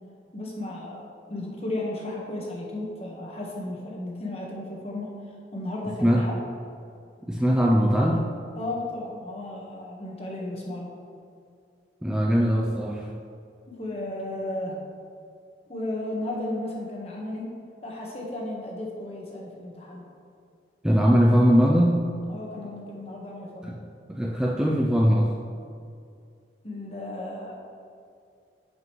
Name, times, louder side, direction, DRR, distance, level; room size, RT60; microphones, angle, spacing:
voice 1, 0.3-5.1 5.5-6.4 8.6-10.9 13.8-14.8 15.7-17.5 17.8-20.0 22.3-23.7 26.6-27.6, left 1 dB, 35° left, -2 dB, 1.4 m, -34 dB
voice 2, 7.3-8.3 12.0-13.1 20.8-22.1 23.6-23.8 24.1-25.3, equal, 5° right, -2 dB, 0.4 m, -21 dB
11.0 x 5.3 x 3.2 m, 2.4 s
head